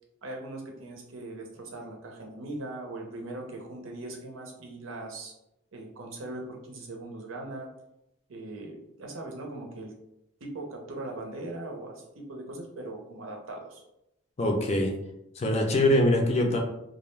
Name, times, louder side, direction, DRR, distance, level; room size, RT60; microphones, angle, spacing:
voice 1, 0.2-5.3 5.7-7.7 8.3-9.9 10.4-13.8, right 2 dB, 90° right, 1 dB, 0.6 m, -40 dB
voice 2, 14.4-14.9 15.4-16.6, left 1 dB, 35° left, 2 dB, 0.4 m, -23 dB
2.4 x 2.0 x 3.1 m, 0.85 s
head